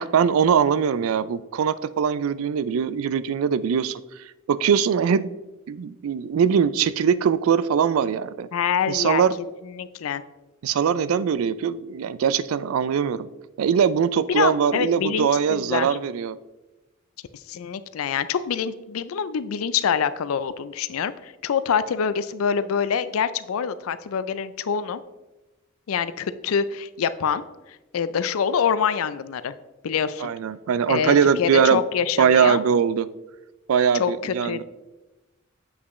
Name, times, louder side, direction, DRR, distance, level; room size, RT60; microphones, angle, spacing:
voice 1, 0.0-4.0 4.5-5.3 5.7-8.5 8.9-9.4 10.6-13.3 13.6-16.4 30.2-31.8 32.2-33.1 33.7-34.6, right 7 dB, 80° right, 16 dB, 0.3 m, -21 dB
voice 2, 8.5-9.2 9.6-10.2 14.3-15.9 17.3-25.0 25.9-27.4 27.9-29.5 29.8-30.3 30.9-32.6 33.9-34.6, left 7 dB, 80° left, 14 dB, 0.4 m, -25 dB
7.8 x 6.0 x 3.1 m, 1.1 s
head